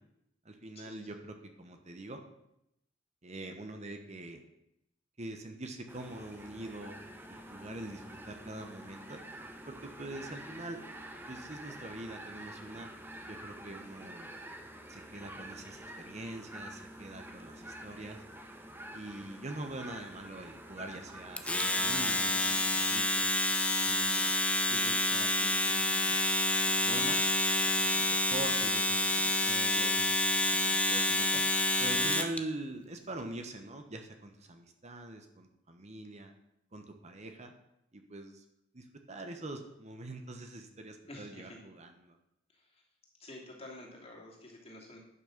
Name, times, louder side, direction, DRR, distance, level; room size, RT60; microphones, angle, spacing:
voice 1, 0.4-2.2 3.2-4.4 5.2-6.9 7.3-9.2 9.7-10.8 11.3-12.9 13.3-14.3 14.9-18.2 18.9-23.3 23.8-24.3 24.7-26.2 26.6-27.2 27.6-30.0 30.4-31.4 31.8-36.3 36.7-37.5 37.9-38.4 38.7-42.2, right 2 dB, 40° right, 5 dB, 1.1 m, -44 dB
sound 1, 5.9-22.7, right 1 dB, 10° right, 1.1 m, -48 dB
Domestic sounds home sounds, 21.4-32.4, left 1 dB, 5° left, 0.8 m, -28 dB
voice 2, 41.1-41.6 42.5-42.8 43.2-45.0, left 1 dB, 35° left, -2 dB, 2.8 m, -49 dB
11.0 x 6.1 x 6.6 m, 0.81 s
head